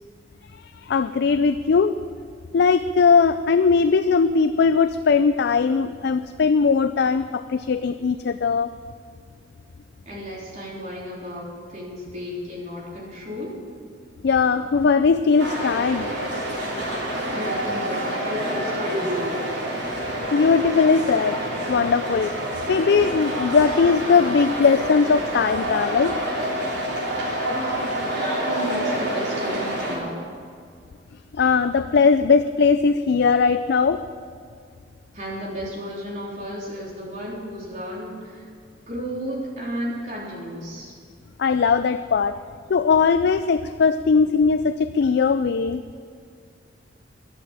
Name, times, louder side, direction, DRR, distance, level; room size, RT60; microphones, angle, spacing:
voice 1, 0.8-2.0 2.5-8.7 14.2-16.1 20.3-21.4 21.7-22.4 22.7-26.2 31.3-34.0 41.4-42.4 42.7-45.8, left 5 dB, 65° left, 11 dB, 0.4 m, -19 dB
voice 2, 10.1-13.6 17.3-19.3 27.5-30.3 35.1-38.5 38.9-40.9, equal, 45° right, -5 dB, 3.8 m, -33 dB
sound 1, 15.4-30.0, right 1 dB, 65° right, 3.3 m, -27 dB
12.5 x 11.0 x 7.2 m, 2.2 s
head